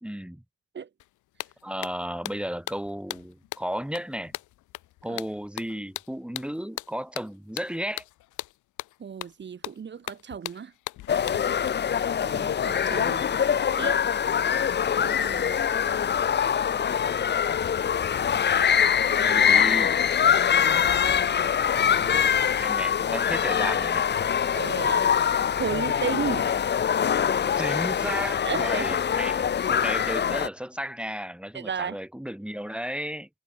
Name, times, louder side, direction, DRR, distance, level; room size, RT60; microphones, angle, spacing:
voice 1, 0.0-0.4 1.6-4.3 5.0-8.0 19.2-20.0 22.6-24.1 27.6-33.3, equal, 5° right, 3.4 m, -34 dB
sound 1, 1.0-1.1 1.4-11.7, left 17 dB, 80° left, 0.7 m, -39 dB
voice 2, 9.0-10.7 12.2-13.2 13.7-14.0 15.0-15.6 19.1-19.4 21.7-22.4 24.5-25.1 25.6-26.5 28.4-29.0 31.5-32.0, right 7 dB, 35° right, 1.3 m, -34 dB
sound 2, 11.1-30.5, left 8 dB, 35° left, 0.7 m, -24 dB
cardioid pair, 90°, 30 cm